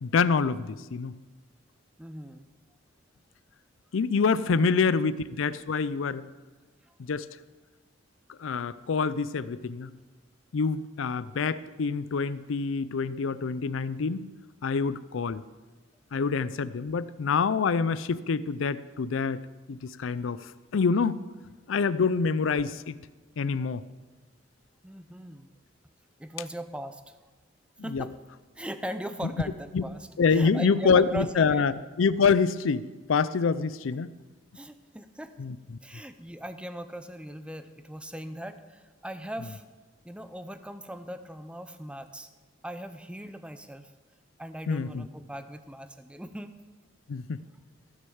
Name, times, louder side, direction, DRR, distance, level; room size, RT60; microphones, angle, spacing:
voice 1, 0.0-1.1 3.9-6.2 7.1-7.3 8.3-9.9 10.5-14.3 14.6-15.4 16.1-19.4 19.7-21.2 21.7-23.0 23.4-23.8 27.9-28.0 29.7-29.8 30.2-34.1 35.4-35.6 44.7-45.1 47.1-47.4, left 5 dB, 90° left, 16 dB, 0.5 m, -26 dB
voice 2, 2.0-2.5 4.5-5.0 6.8-6.9 24.8-25.5 26.2-27.2 27.8-28.2 28.6-31.6 34.5-35.4 35.8-39.6 40.0-42.3 42.6-43.9 44.4-46.5, right 1 dB, 5° right, 10 dB, 0.6 m, -39 dB
15.0 x 6.6 x 7.1 m, 1.2 s
head